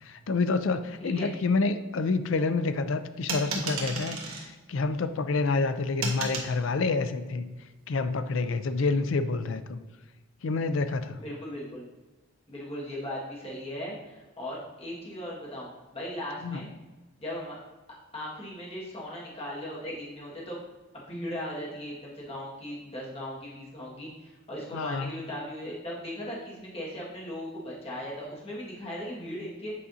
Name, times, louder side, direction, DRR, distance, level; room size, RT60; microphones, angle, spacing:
voice 1, 0.1-7.4 7.9-9.8 10.4-11.2 16.4-16.6 24.7-25.1, left 3 dB, 65° left, 10 dB, 0.4 m, -28 dB
voice 2, 1.0-1.3 11.2-11.8 12.5-16.7 17.2-17.5 18.1-20.6 20.9-29.7, equal, 30° left, -6 dB, 1.8 m, -38 dB
sound 1, 3.3-4.5 6.0-6.5, right 4 dB, 85° right, 1.4 m, -33 dB
8.3 x 4.9 x 2.7 m, 1.2 s
head